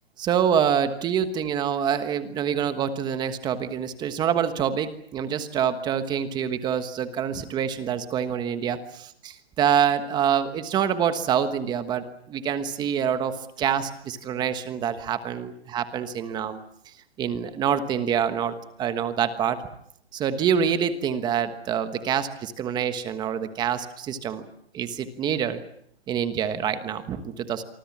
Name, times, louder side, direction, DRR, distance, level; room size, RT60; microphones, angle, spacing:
voice 1, 0.2-8.8 9.6-16.6 17.2-19.6 20.1-24.5 24.7-25.6 26.1-27.6, right 8 dB, 15° right, 10 dB, 1.3 m, -26 dB
27.0 x 24.5 x 7.4 m, 0.72 s
hypercardioid pair, 160°, 32 cm